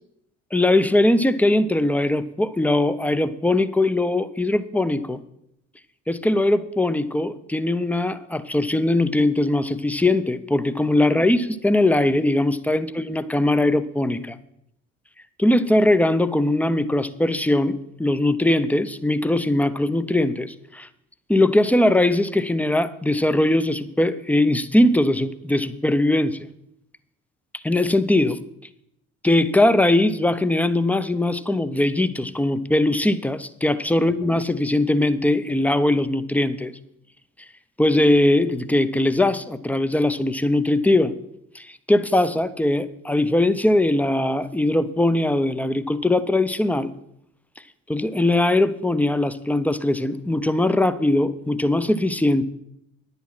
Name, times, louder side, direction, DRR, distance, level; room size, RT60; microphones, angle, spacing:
voice 1, 0.5-5.2 6.1-14.4 15.4-20.9 21.3-26.5 27.6-28.4 29.2-36.7 37.8-41.1 41.5-46.9 47.9-52.4, left 1 dB, 5° left, 14 dB, 0.7 m, -20 dB
10.5 x 8.3 x 6.0 m, 0.78 s
hypercardioid pair, 50°, 38 cm